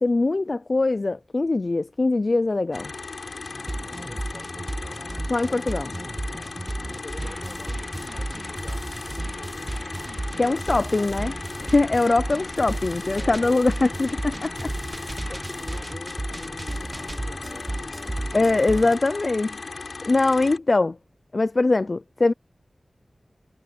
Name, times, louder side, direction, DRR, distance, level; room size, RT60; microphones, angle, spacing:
voice 1, 0.0-2.9 5.3-5.9 10.4-11.3 11.6-14.7 18.3-19.6 20.1-21.0 21.3-22.3, left 3 dB, 50° left, 0.4 m, -22 dB
sound 1, 2.7-20.6, left 4 dB, 80° left, 6.2 m, -37 dB
sound 2, 3.4-18.9, right 2 dB, 30° right, 0.5 m, -34 dB
voice 2, 3.7-5.0 6.7-9.8 10.4-11.2 11.5-11.7 13.1-13.6 15.2-18.7, left 1 dB, 25° left, 6.0 m, -45 dB
wide cardioid pair, 65°, 0 cm